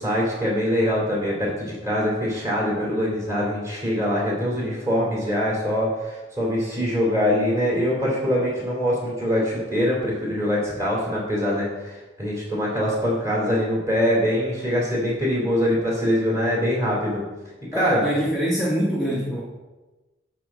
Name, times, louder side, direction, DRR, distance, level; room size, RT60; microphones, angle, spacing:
voice 1, 0.0-17.2 17.7-18.0, equal, 15° right, -4 dB, 2.8 m, -23 dB
voice 2, 17.7-19.4, equal, ahead, -6 dB, 0.9 m, -24 dB
8.7 x 4.1 x 6.1 m, 1.2 s
head